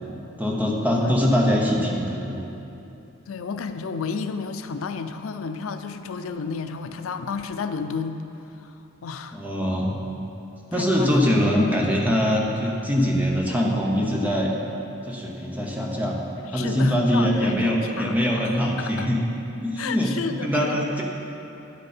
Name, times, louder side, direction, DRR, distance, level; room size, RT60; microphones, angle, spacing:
voice 1, 0.4-2.5 9.3-10.0 10.7-14.5 15.1-19.2 19.6-20.1 20.4-21.0, equal, 10° right, -2 dB, 1.0 m, -23 dB
voice 2, 3.3-8.2 8.6-9.4 10.7-11.4 16.5-18.1 18.4-19.1 19.8-20.9, left 5 dB, 90° left, 9 dB, 0.5 m, -32 dB
9.8 x 8.4 x 4.4 m, 2.9 s
head